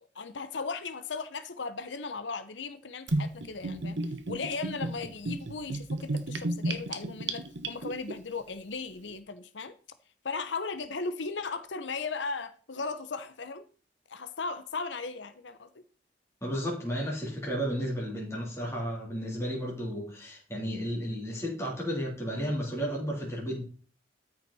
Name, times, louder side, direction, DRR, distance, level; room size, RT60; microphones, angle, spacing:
voice 1, 0.1-4.0 4.3-9.7 10.2-13.6 14.1-15.7, left 4 dB, 80° left, 0.8 m, -37 dB
Gurgling / Bathtub (filling or washing), 3.1-8.1, right 2 dB, 75° right, 1.2 m, -32 dB
voice 2, 16.4-23.6, equal, 15° left, 3.4 m, -33 dB
13.5 x 5.7 x 4.2 m
head